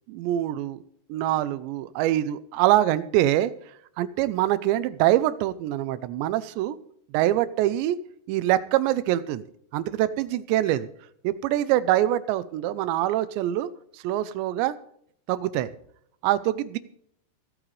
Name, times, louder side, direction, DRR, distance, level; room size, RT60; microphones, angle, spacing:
voice 1, 0.1-0.8 1.1-3.5 4.0-6.8 7.1-8.0 8.3-9.4 9.7-10.9 11.2-14.7 15.3-15.7 16.2-16.8, right 13 dB, 90° right, 15 dB, 3.0 m, -24 dB
25.5 x 8.9 x 3.3 m, 0.67 s
omnidirectional pair, 5.0 m